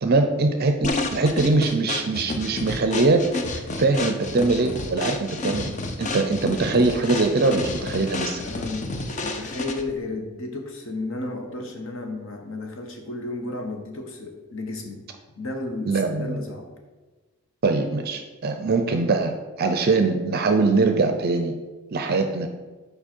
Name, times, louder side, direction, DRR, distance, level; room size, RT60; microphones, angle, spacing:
voice 1, 0.0-3.2 3.8-5.7 6.0-8.4 15.9-16.4 17.6-21.6 21.9-22.5, right 3 dB, 45° right, 6 dB, 0.5 m, -22 dB
sound 1, 0.8-10.0, left 2 dB, 35° left, 0.5 m, -30 dB
voice 2, 8.4-15.0 15.4-16.7, left 2 dB, 60° left, 3 dB, 1.1 m, -33 dB
7.2 x 5.0 x 4.4 m, 1.3 s
head